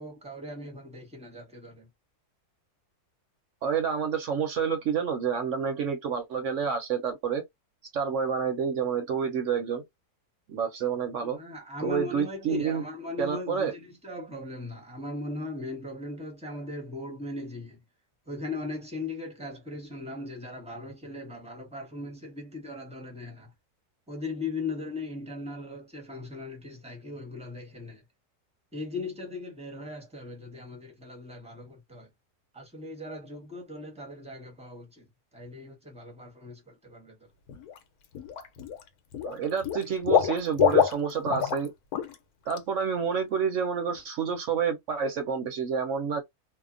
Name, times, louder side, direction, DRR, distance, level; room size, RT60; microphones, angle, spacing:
voice 1, 0.0-1.9 11.2-17.8 18.3-23.5 24.1-28.0 28.7-32.1 32.5-35.1 35.3-37.2, left 2 dB, 5° right, 0.7 m, -38 dB
voice 2, 3.6-7.4 7.9-9.8 10.5-11.4 11.8-12.8 13.2-13.7 39.2-41.7 42.5-46.2, right 7 dB, 60° right, 0.9 m, -29 dB
Water / Liquid, 37.5-37.8 38.1-38.8 39.1-41.7 41.9-42.1 42.5-42.6, left 9 dB, 80° left, 1.1 m, -25 dB
2.8 x 2.1 x 2.4 m
omnidirectional pair, 1.6 m